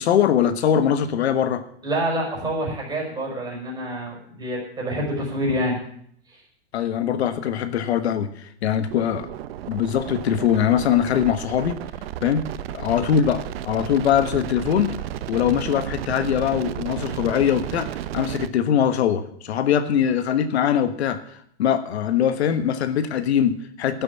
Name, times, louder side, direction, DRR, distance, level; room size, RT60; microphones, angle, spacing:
voice 1, 0.0-1.6 6.7-9.3 9.7-11.8 12.2-12.4 12.7-14.9 15.3-17.9 18.1-24.0, left 9 dB, 80° left, 10 dB, 1.3 m, -22 dB
voice 2, 1.8-5.8 6.3-6.4, equal, 10° right, -2 dB, 5.3 m, -27 dB
sound 1, 8.9-18.5, right 12 dB, 65° right, 0.9 m, -33 dB
11.5 x 7.8 x 8.7 m, 0.67 s
supercardioid pair, 145°, 32 cm